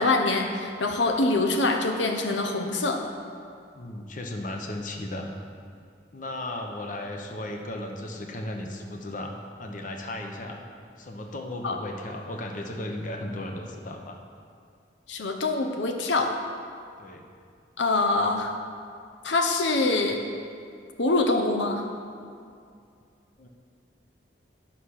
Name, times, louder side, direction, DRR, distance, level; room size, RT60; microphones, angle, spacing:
voice 1, 0.0-3.0 11.6-11.8 15.1-16.4 17.8-18.5 19.2-20.2 21.0-21.8, left 2 dB, 90° left, 3 dB, 0.9 m, -24 dB
voice 2, 3.7-5.3 6.1-9.3 9.6-10.6 11.0-14.2 17.0-17.2 23.4-23.5, left 1 dB, 45° left, 3 dB, 0.9 m, -35 dB
11.0 x 5.6 x 6.5 m, 2.3 s
head